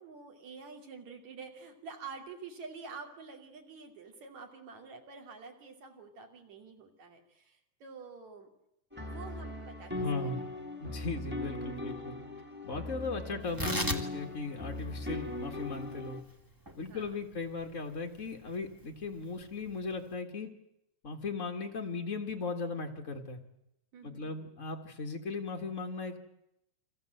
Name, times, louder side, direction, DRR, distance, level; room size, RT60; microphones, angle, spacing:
voice 1, 0.0-8.5 8.9-10.5 16.9-17.1 23.9-24.5, right 4 dB, 50° right, 4 dB, 4.2 m, -48 dB
sound 1, 8.9-16.2, left 2 dB, 5° right, 1.7 m, -39 dB
voice 2, 9.9-10.4 10.8-12.1 12.6-16.2 16.8-20.5 21.0-23.4 24.0-26.2, left 3 dB, 50° left, 3 dB, 0.8 m, -37 dB
Tearing, 13.4-20.1, equal, 25° right, 0.4 m, -41 dB
30.0 x 23.5 x 7.9 m, 0.83 s
omnidirectional pair, 4.3 m